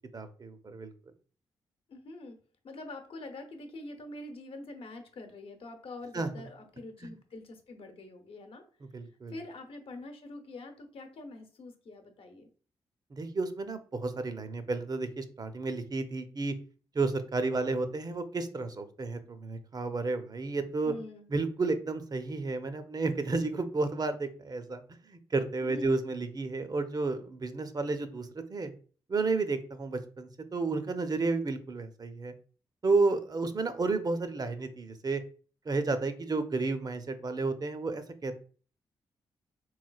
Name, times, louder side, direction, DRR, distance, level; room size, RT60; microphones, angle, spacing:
voice 1, 0.1-0.9 6.1-6.3 8.9-9.3 13.1-16.5 16.9-20.9 21.3-24.8 25.1-28.7 29.1-32.3 32.8-35.2 35.7-38.4, right 3 dB, 40° right, 10 dB, 0.6 m, -31 dB
voice 2, 1.9-2.4 2.6-8.6 9.0-12.5 20.8-21.3 25.6-25.9, left 2 dB, 60° left, 5 dB, 0.9 m, -45 dB
3.8 x 3.1 x 2.3 m, 0.40 s
hypercardioid pair, 40°, 10 cm